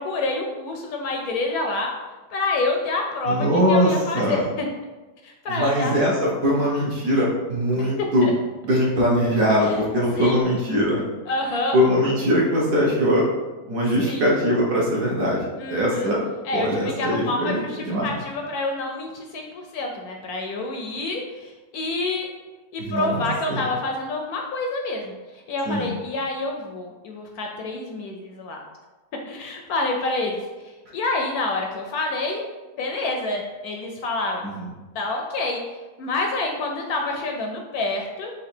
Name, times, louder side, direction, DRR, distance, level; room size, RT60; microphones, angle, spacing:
voice 1, 0.0-1.9 2.3-4.7 5.2-5.9 8.2-8.3 9.6-9.8 10.1-10.4 11.3-11.8 14.0-14.3 15.6-16.1 16.4-22.3 22.7-28.6 29.3-30.4 30.9-32.5 32.8-34.5 34.9-35.6 36.0-38.3, left 2 dB, 70° left, 2 dB, 1.0 m, -27 dB
voice 2, 3.3-4.5 5.5-8.3 8.6-11.0 11.7-13.2 13.7-16.2 16.5-18.1 22.8-23.6 25.7-25.9 34.4-34.7, equal, 60° right, -3 dB, 1.2 m, -21 dB
4.0 x 2.7 x 4.3 m, 1.2 s
omnidirectional pair, 1.8 m